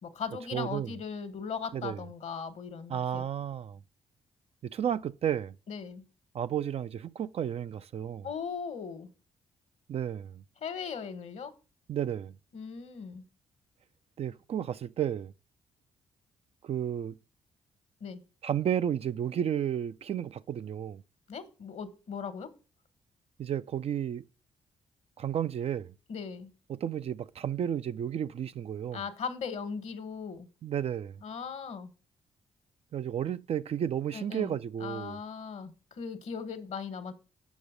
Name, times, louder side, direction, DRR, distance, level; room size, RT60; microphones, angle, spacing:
voice 1, 0.0-3.2 5.7-6.0 8.2-9.1 10.6-11.5 12.5-13.2 18.0-18.2 21.3-22.5 26.1-26.5 28.9-30.5 31.2-31.9 34.1-37.1, left 6 dB, 60° left, 1.3 m, -38 dB
voice 2, 0.5-0.9 1.7-2.0 2.9-3.8 4.6-5.5 6.3-8.3 9.9-10.4 11.9-12.3 14.2-15.3 16.6-17.2 18.4-21.0 23.4-24.2 25.2-25.9 26.7-29.0 30.6-31.2 32.9-35.2, right 9 dB, 50° right, 0.4 m, -32 dB
7.2 x 5.9 x 5.1 m
hypercardioid pair, 45°, 13 cm